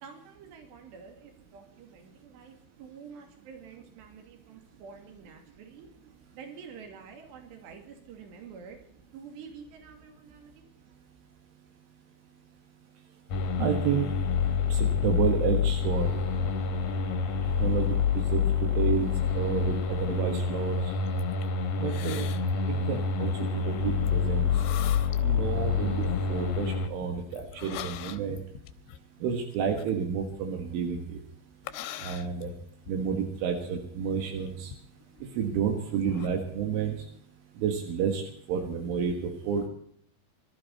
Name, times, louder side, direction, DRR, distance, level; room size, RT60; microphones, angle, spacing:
voice 1, 0.0-5.9 6.3-8.8 9.1-10.7, right 6 dB, 65° right, 4 dB, 4.6 m, -48 dB
sound 1, 13.3-26.9, left 6 dB, 60° left, 2.1 m, -27 dB
voice 2, 13.6-14.1 14.7-16.1 17.6-19.1 19.4-20.9 21.8-22.3 22.9-24.5 25.2-28.4 29.2-31.2 32.0-32.5 32.9-34.7 35.4-36.9 37.6-38.2 38.5-39.7, right 7 dB, 80° right, 3 dB, 4.2 m, -30 dB
sound 2, 15.9-26.5, right 1 dB, 45° right, 1.4 m, -48 dB
sound 3, 21.1-21.5 21.8-22.5 22.8-23.1 24.1-24.2 24.5-25.2 25.6-26.1 26.9-30.8 31.6-33.0 33.7-33.8 34.3-35.6 36.0-36.3, left 12 dB, 85° left, 3.3 m, -42 dB
24.0 x 12.5 x 4.2 m, 0.68 s
omnidirectional pair, 5.5 m